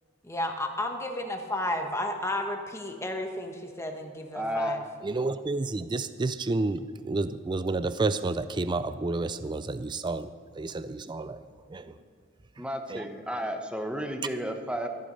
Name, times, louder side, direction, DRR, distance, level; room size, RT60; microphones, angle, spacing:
voice 1, 0.2-4.8, left 1 dB, 15° left, 1.2 m, -32 dB
voice 2, 4.3-4.8 12.6-14.9, equal, 5° right, 0.9 m, -32 dB
voice 3, 5.0-10.3 10.6-11.4 11.7-11.9 12.9-13.0, right 3 dB, 25° right, 0.4 m, -30 dB
14.0 x 8.6 x 5.3 m
head